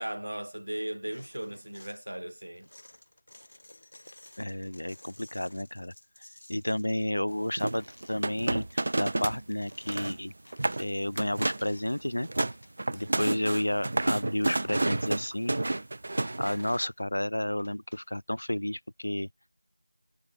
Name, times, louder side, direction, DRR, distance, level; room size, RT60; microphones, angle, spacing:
voice 1, 0.0-2.7 13.0-13.5, right 1 dB, 65° right, 2.4 m, -37 dB
sound 1, 1.1-2.0 2.6-12.1 12.4-13.2 13.5-14.7 15.2-15.3 15.6-16.1 16.6-16.9 17.6-18.1, left 1 dB, 45° left, 6.7 m, -56 dB
voice 2, 4.4-5.9 6.5-8.7 9.0-10.3 10.8-12.3 12.9-15.6 16.4-19.3, left 1 dB, 60° left, 0.4 m, -31 dB
sound 2, 7.6-9.4 9.7-10.2 10.5-10.8 11.2-11.7 12.1-16.8, right 2 dB, 35° right, 0.3 m, -30 dB
figure-of-eight pair, 170°, 0 cm